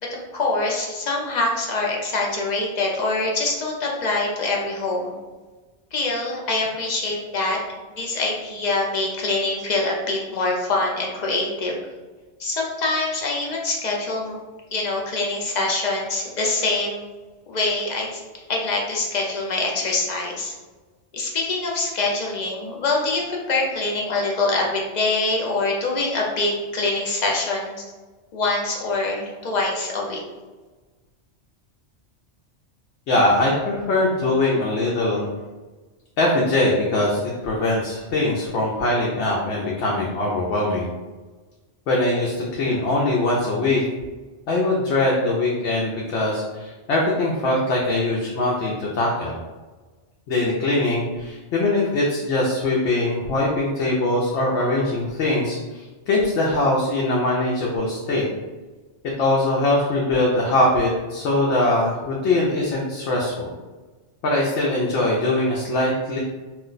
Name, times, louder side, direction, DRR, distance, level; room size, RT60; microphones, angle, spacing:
voice 1, 0.1-5.1 5.9-7.6 7.9-11.7 12.4-14.4 14.7-17.0 17.5-18.2 18.5-20.5 21.1-27.8 28.3-30.2, left 2 dB, 50° left, -1 dB, 0.5 m, -24 dB
voice 2, 33.1-35.3 36.2-40.9 41.9-43.8 44.5-49.4 50.3-58.3 59.2-63.5 64.2-66.2, left 2 dB, 75° left, -3 dB, 0.8 m, -22 dB
2.4 x 2.1 x 3.8 m, 1.3 s
omnidirectional pair, 1.2 m